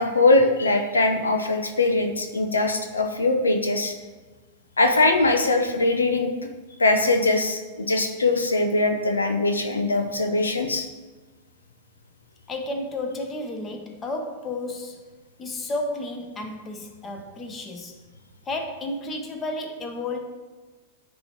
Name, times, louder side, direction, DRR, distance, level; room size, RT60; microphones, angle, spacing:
voice 1, 0.0-3.9 4.8-6.3 6.8-10.9, left 2 dB, 90° left, 5 dB, 0.6 m, -21 dB
voice 2, 12.5-15.0 15.4-18.0 18.4-20.2, left 2 dB, 25° left, 4 dB, 1.1 m, -32 dB
9.3 x 3.1 x 4.5 m, 1.3 s
hypercardioid pair, 95°, 0 cm